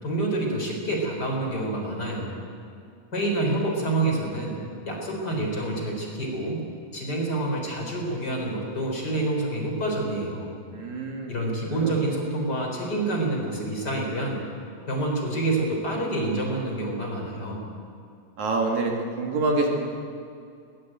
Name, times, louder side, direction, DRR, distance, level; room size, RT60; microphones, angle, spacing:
voice 1, 0.0-2.4 3.1-4.6 4.9-6.6 6.9-10.5 11.3-14.4 14.9-17.6, right 2 dB, 30° left, -1 dB, 5.0 m, -27 dB
voice 2, 10.7-11.3 11.7-12.0 18.4-19.9, right 2 dB, 60° right, 1 dB, 3.4 m, -26 dB
21.5 x 19.0 x 9.1 m, 2.4 s
omnidirectional pair, 3.9 m